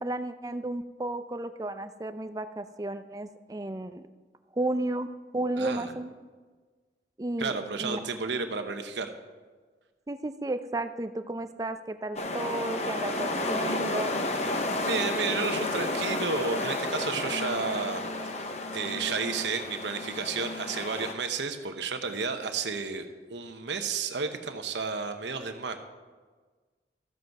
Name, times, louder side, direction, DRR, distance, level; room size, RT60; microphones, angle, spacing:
voice 1, 0.0-4.0 4.6-5.1 5.3-6.1 7.2-8.0 10.1-14.1, right 2 dB, 20° right, 10 dB, 0.4 m, -33 dB
voice 2, 5.6-5.9 7.4-9.1 14.8-18.0 18.3-23.0 23.3-25.8, right 4 dB, 80° right, 7 dB, 0.9 m, -32 dB
sound 1, 12.2-21.1, left 2 dB, 35° left, 0.8 m, -31 dB
13.5 x 7.8 x 4.7 m, 1.4 s
head